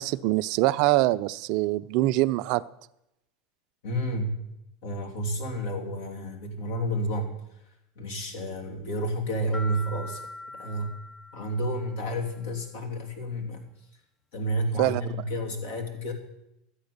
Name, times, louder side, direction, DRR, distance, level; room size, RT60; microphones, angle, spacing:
voice 1, 0.0-2.6 14.8-15.0, right 17 dB, 65° right, 15 dB, 0.4 m, -24 dB
voice 2, 3.8-4.4 4.8-7.3 8.0-10.3 10.5-10.9 11.3-13.6 14.3-16.1, equal, 75° left, 3 dB, 2.7 m, -30 dB
sound 1, 9.5-12.2, left 2 dB, 30° left, 0.6 m, -42 dB
13.0 x 8.6 x 6.7 m, 0.84 s
hypercardioid pair, 100°, 0 cm